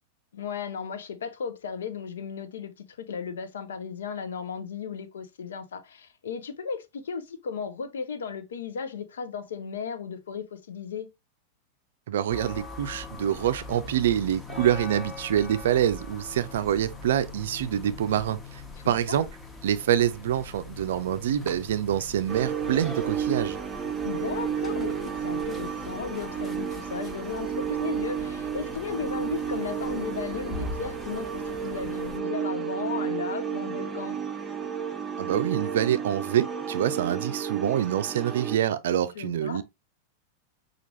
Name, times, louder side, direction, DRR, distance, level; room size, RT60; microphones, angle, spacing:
voice 1, 0.3-11.1 18.8-19.2 24.0-34.2 39.1-39.6, left 6 dB, 65° left, 0.7 m, -35 dB
voice 2, 12.1-19.3 19.6-23.6 35.2-39.6, right 10 dB, 60° right, 0.4 m, -26 dB
sound 1, 12.3-32.2, left 3 dB, 10° left, 0.9 m, -42 dB
sound 2, 22.3-38.6, right 7 dB, 15° right, 0.6 m, -32 dB
5.9 x 2.5 x 3.0 m
figure-of-eight pair, 90°, 0 cm